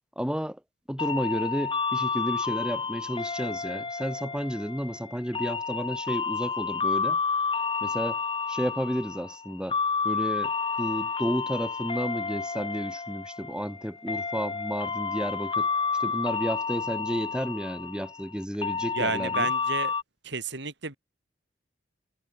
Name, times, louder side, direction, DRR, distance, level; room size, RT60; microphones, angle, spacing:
voice 1, 0.2-0.6 0.9-7.2 7.8-8.2 8.5-9.8 10.0-10.5 10.8-15.7 16.0-19.5, equal, 5° right, 5.6 m, -32 dB
sound 1, 1.0-20.0, left 5 dB, 30° left, 2.2 m, -30 dB
voice 2, 18.9-19.9 20.2-20.9, right 4 dB, 65° right, 5.5 m, -31 dB
head